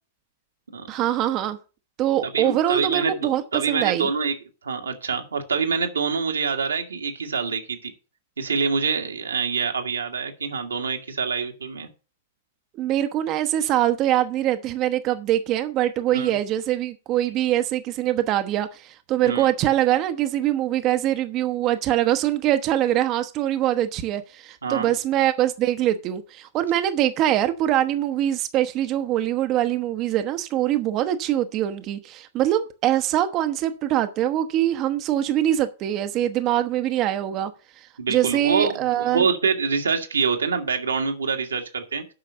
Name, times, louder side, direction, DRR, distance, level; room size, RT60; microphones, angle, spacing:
voice 1, 0.9-1.6 2.0-4.1 12.8-39.3, right 12 dB, 40° right, 0.8 m, -23 dB
voice 2, 2.3-4.3 4.6-7.9 8.4-11.9 16.1-16.4 19.2-19.5 24.6-24.9 38.0-42.1, right 5 dB, 85° right, 1.7 m, -25 dB
8.6 x 5.8 x 6.8 m
hypercardioid pair, 105°, 0 cm